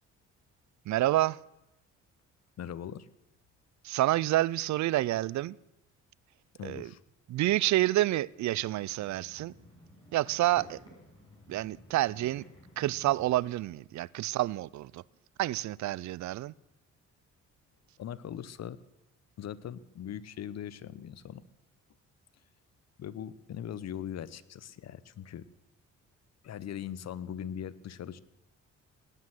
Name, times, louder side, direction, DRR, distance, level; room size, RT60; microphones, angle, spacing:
voice 1, 0.9-1.4 3.8-5.6 6.6-6.9 7.3-9.5 10.1-10.8 11.5-12.4 12.8-15.0 15.4-16.5, right 15 dB, 70° right, 0.5 m, -28 dB
voice 2, 2.6-3.1 6.6-7.0 18.0-18.8 19.4-21.4 23.0-25.4 26.4-28.2, left 9 dB, 60° left, 0.9 m, -40 dB
sound 1, 8.6-13.2, equal, 15° left, 7.1 m, -54 dB
18.5 x 9.7 x 7.8 m
cardioid pair, 90°, 30 cm